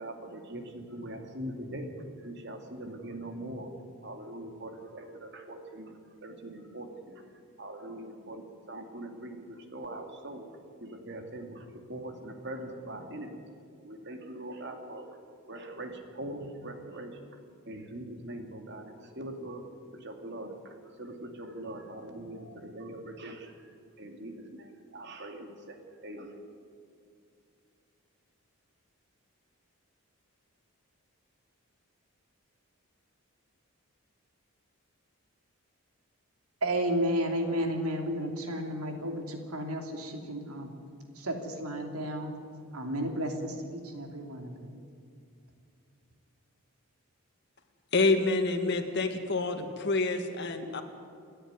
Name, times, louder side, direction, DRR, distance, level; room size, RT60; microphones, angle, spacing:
voice 1, 0.0-5.9 6.2-7.2 7.6-13.4 13.8-15.1 15.5-17.3 17.6-19.6 19.9-26.4, right 1 dB, 50° right, 4 dB, 2.5 m, -42 dB
voice 2, 36.6-40.7 41.1-42.3 42.7-44.7, equal, 80° right, 4 dB, 3.0 m, -32 dB
voice 3, 47.9-50.8, left 3 dB, 50° left, 6 dB, 2.0 m, -27 dB
29.0 x 10.0 x 9.7 m, 2.4 s
head